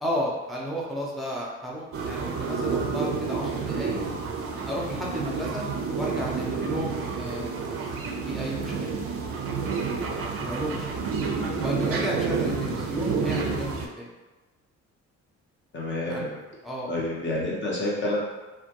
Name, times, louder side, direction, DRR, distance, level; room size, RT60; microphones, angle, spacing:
voice 1, 0.0-4.0 4.7-5.6 6.0-7.9 8.2-8.9 9.9-11.0 11.6-14.1 16.1-16.3 16.6-16.9, equal, ahead, -4 dB, 0.6 m, -33 dB
sound 1, 1.9-13.9, right 5 dB, 50° right, 0.4 m, -29 dB
voice 2, 15.7-16.4 16.9-18.2, left 1 dB, 40° left, -4 dB, 0.8 m, -28 dB
2.2 x 2.1 x 2.8 m, 1.2 s
cardioid pair, 90°, 30 cm